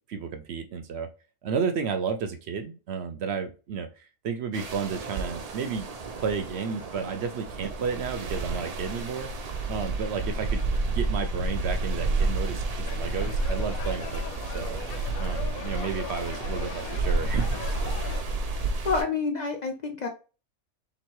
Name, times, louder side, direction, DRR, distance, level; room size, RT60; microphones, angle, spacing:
voice 1, 0.1-1.1 1.4-5.9 6.2-9.3 9.7-10.6 10.9-14.8 15.2-17.6, right 6 dB, 65° right, 8 dB, 0.7 m, -32 dB
sound 1, 4.5-19.0, right 3 dB, 90° right, 0.3 m, -30 dB
sound 2, 12.8-18.2, left 8 dB, 90° left, 1.0 m, -40 dB
voice 2, 18.8-20.1, left 4 dB, 50° left, 3 dB, 0.5 m, -28 dB
3.6 x 3.0 x 4.5 m, 0.34 s
omnidirectional pair, 1.4 m